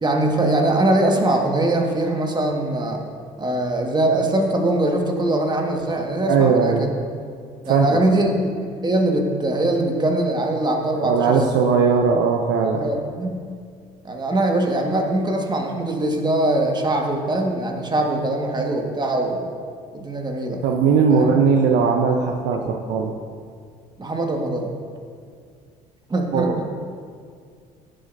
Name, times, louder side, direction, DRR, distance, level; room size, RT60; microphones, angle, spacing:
voice 1, 0.0-3.0 3.4-6.9 7.6-8.5 8.8-11.4 12.8-13.4 14.0-19.5 19.9-20.6 21.1-21.4 24.0-24.7 26.1-26.7, right 1 dB, 20° right, 2 dB, 1.6 m, -22 dB
voice 2, 6.3-6.9 7.6-7.9 11.0-12.9 20.6-23.1 26.3-26.7, right 5 dB, 60° right, 3 dB, 0.8 m, -19 dB
15.5 x 7.6 x 2.7 m, 2.1 s
hypercardioid pair, 60°, 21 cm